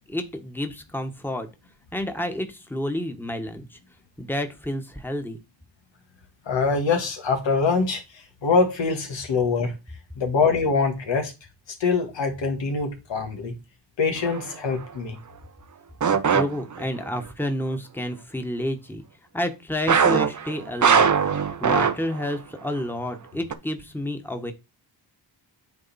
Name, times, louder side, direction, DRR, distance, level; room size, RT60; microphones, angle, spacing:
voice 1, 0.1-1.5 1.9-3.8 4.2-5.4 16.1-19.0 19.3-21.3 21.6-24.5, left 1 dB, 5° left, 1.4 m, -30 dB
voice 2, 6.5-9.7 10.2-11.3 11.7-13.5 14.0-15.2, left 4 dB, 80° left, 1.8 m, -24 dB
sound 1, 14.2-14.5 16.0-17.1 19.9-22.4 22.7-22.8 23.5-23.6, right 7 dB, 40° right, 0.8 m, -21 dB
9.0 x 3.6 x 4.2 m
cardioid pair, 60°, 44 cm